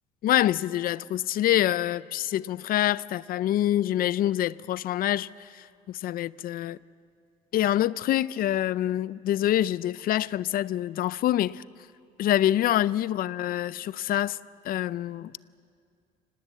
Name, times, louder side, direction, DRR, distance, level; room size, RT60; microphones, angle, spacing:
voice 1, 0.2-6.8 7.5-11.6 12.2-14.4 14.6-15.4, left 12 dB, 60° left, 0.5 m, -26 dB
25.5 x 19.5 x 8.2 m
cardioid pair, 110°, 17 cm